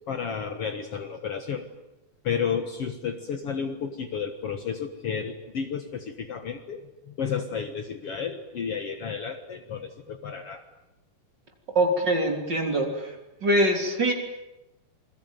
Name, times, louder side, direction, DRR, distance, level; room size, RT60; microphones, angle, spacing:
voice 1, 0.1-1.6 2.2-10.6, left 6 dB, 55° left, 6 dB, 2.2 m, -32 dB
voice 2, 11.7-14.1, right 1 dB, 30° right, 3 dB, 4.1 m, -24 dB
27.5 x 22.0 x 9.3 m, 0.96 s
omnidirectional pair, 3.7 m